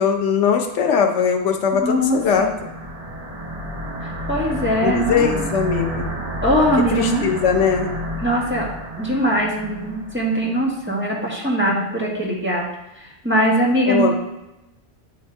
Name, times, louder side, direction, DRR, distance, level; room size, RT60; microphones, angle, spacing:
voice 1, 0.0-2.5 4.8-6.1 6.9-7.9 13.9-14.1, left 6 dB, 75° left, 4 dB, 1.0 m, -20 dB
voice 2, 1.7-2.5 4.3-5.4 6.4-7.3 8.2-8.7 9.0-12.6 13.0-14.1, equal, 10° right, -5 dB, 1.3 m, -21 dB
sound 1, 1.7-10.3, equal, 35° right, 1.1 m, -30 dB
8.8 x 3.3 x 4.4 m, 0.97 s
omnidirectional pair, 1.2 m